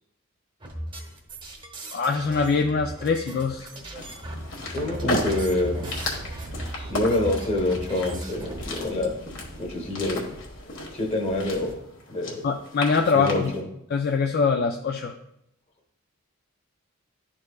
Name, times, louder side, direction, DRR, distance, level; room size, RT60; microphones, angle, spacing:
sound 1, 0.6-8.9, right 1 dB, 25° right, 1.0 m, -39 dB
voice 1, 1.9-3.7 12.4-13.5 13.9-15.1, left 5 dB, 50° left, 4 dB, 0.4 m, -23 dB
sound 2, 3.9-13.6, left 2 dB, 65° left, 1.4 m, -35 dB
voice 2, 4.7-5.8 6.9-9.2 9.6-10.3 10.9-11.8 12.1-12.4 13.1-13.6, left 1 dB, 30° left, 2 dB, 1.2 m, -26 dB
sound 3, 4.8-10.4 10.7-10.8, right 2 dB, 45° right, 0.4 m, -39 dB
11.5 x 4.4 x 2.3 m, 0.81 s
head